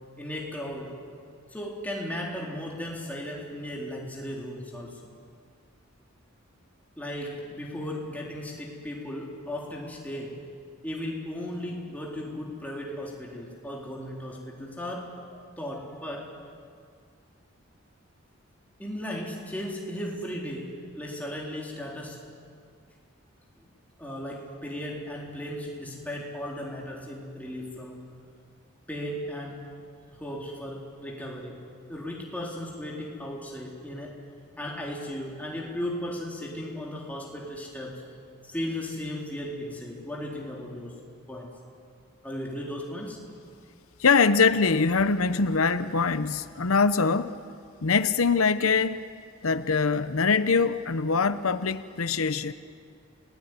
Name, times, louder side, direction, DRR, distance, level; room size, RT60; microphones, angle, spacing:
voice 1, 0.2-1.0 1.5-5.1 7.0-10.4 10.8-15.1 15.6-16.3 18.8-22.3 23.6-23.7 24.0-28.0 28.9-29.7 30.1-31.6 31.9-34.2 34.6-38.0 38.4-41.0 41.3-41.6 42.2-43.2, left 1 dB, 5° left, 3.9 m, -36 dB
voice 2, 44.0-47.4 47.8-49.1 49.4-52.5, left 4 dB, 90° left, 0.8 m, -23 dB
29.5 x 19.0 x 9.6 m
head